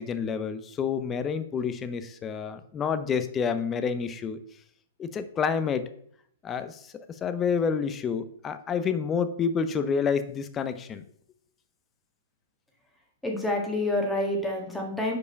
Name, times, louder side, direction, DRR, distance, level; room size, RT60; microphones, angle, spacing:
voice 1, 0.0-4.4 5.0-5.9 6.4-6.8 7.2-11.0, left 6 dB, 20° left, 11 dB, 0.6 m, -28 dB
voice 2, 13.2-15.2, left 1 dB, 5° left, 0 dB, 1.5 m, -28 dB
5.0 x 4.7 x 5.2 m, 0.65 s
hypercardioid pair, 125°, 0 cm